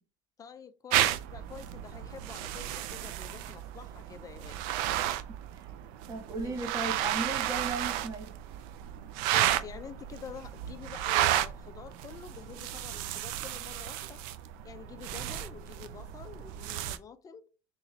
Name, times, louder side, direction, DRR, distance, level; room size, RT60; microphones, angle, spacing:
voice 1, 0.4-4.6 6.4-7.0 9.3-14.2 14.6-17.5, left 7 dB, 20° left, 0.3 m, -47 dB
sound 1, 0.9-17.0, right 13 dB, 60° right, 0.4 m, -33 dB
voice 2, 6.1-8.4, right 3 dB, 20° right, 0.7 m, -36 dB
3.0 x 2.8 x 3.9 m
supercardioid pair, 130°, 16 cm